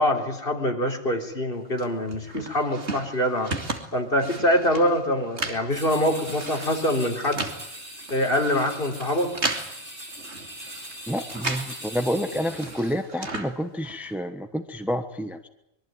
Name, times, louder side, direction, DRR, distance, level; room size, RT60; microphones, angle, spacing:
voice 1, 0.0-3.5 3.9-7.5 8.1-9.3, left 1 dB, 50° left, 3 dB, 4.1 m, -24 dB
sound 1, 1.8-11.8 12.1-14.1, right 2 dB, 70° right, 3.0 m, -35 dB
sound 2, 5.7-13.0, right 1 dB, 45° right, 5.9 m, -41 dB
voice 2, 11.1-15.5, equal, ahead, 7 dB, 1.2 m, -29 dB
25.0 x 23.0 x 9.3 m, 0.80 s
omnidirectional pair, 1.2 m